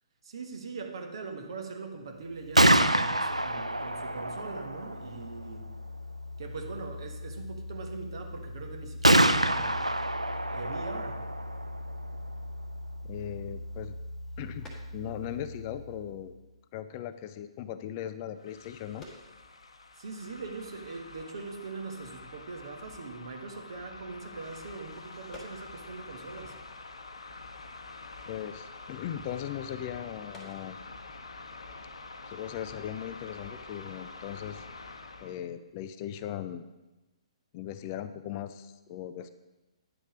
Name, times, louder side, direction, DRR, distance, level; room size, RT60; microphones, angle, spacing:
voice 1, 0.2-5.7 6.4-9.9 10.5-11.3 20.0-26.5, right 4 dB, 55° right, 4 dB, 1.2 m, -41 dB
Gunshot gunfire, 2.3-16.1, right 1 dB, 90° right, 0.4 m, -29 dB
voice 2, 13.1-13.9 14.4-14.7 14.9-16.3 16.7-19.1 28.3-30.8 32.3-34.6 35.2-36.6 37.5-39.3, left 10 dB, 30° left, 12 dB, 0.3 m, -38 dB
sound 1, 14.1-15.4 15.7-16.1 16.6-16.8 17.1-17.2 17.4-17.6 18.5-20.0 20.4-20.5 20.7-21.0 21.4-21.5 21.8-22.2 22.5-22.8 23.1-23.2 24.8-26.7 27.0-30.8, left 2 dB, 10° left, 1.3 m, -55 dB
sound 2, 18.4-35.4, left 3 dB, 65° left, 0.8 m, -47 dB
9.5 x 5.1 x 5.0 m, 1.1 s
figure-of-eight pair, 125°, 3 cm